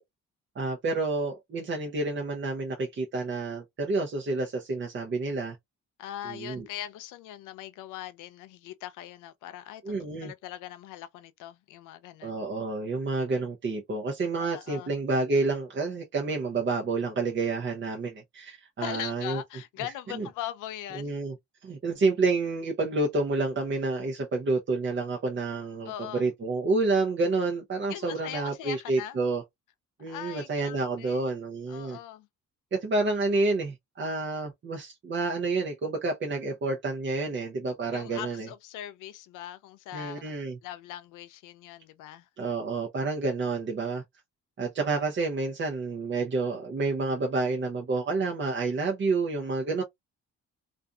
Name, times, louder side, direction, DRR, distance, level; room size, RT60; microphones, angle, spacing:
voice 1, 0.6-5.6 6.2-6.7 9.8-10.3 12.2-19.4 20.1-20.3 20.9-21.3 21.6-29.4 30.0-32.0 32.7-38.5 39.9-40.6 42.4-44.0 44.6-49.8, right 3 dB, 40° right, 0.7 m, -29 dB
voice 2, 6.0-9.9 10.2-12.4 14.4-14.9 18.8-21.1 25.9-26.3 27.9-29.2 30.1-31.2 31.7-32.3 37.9-40.3 40.6-42.3, left 12 dB, 90° left, 0.5 m, -40 dB
2.6 x 2.4 x 2.2 m
cardioid pair, 90°, 30 cm